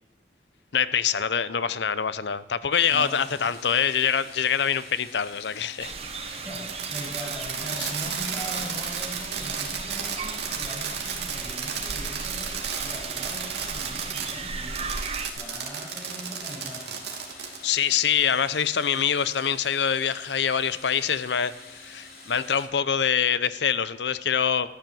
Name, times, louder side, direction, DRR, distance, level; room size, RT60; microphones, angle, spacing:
voice 1, 0.7-5.9 6.2-6.4 7.8-7.9 17.6-21.5 21.8-24.7, left 7 dB, 80° left, 0.7 m, -25 dB
sound 1, 2.7-22.7, left 3 dB, 55° left, 3.3 m, -47 dB
voice 2, 2.9-3.5 6.3-15.1 15.3-17.0, equal, 5° left, 6.7 m, -40 dB
sound 2, 5.8-15.3, right 5 dB, 35° right, 1.0 m, -36 dB
Fireworks, 6.5-14.3 14.8-17.6, right 7 dB, 75° right, 2.6 m, -33 dB
13.5 x 10.5 x 7.7 m
head